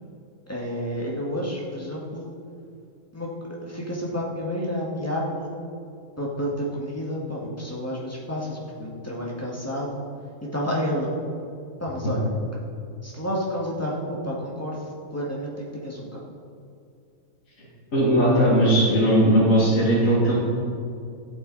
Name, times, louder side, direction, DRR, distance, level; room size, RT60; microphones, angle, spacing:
voice 1, 0.5-2.3 3.1-3.3 3.6-5.6 6.2-10.0 10.4-11.1 11.8-12.3 13.0-16.2, equal, 10° left, -4 dB, 1.9 m, -30 dB
voice 2, 17.9-20.3, right 1 dB, 60° left, -7 dB, 2.6 m, -18 dB
14.0 x 8.4 x 4.1 m, 2.4 s
omnidirectional pair, 1.5 m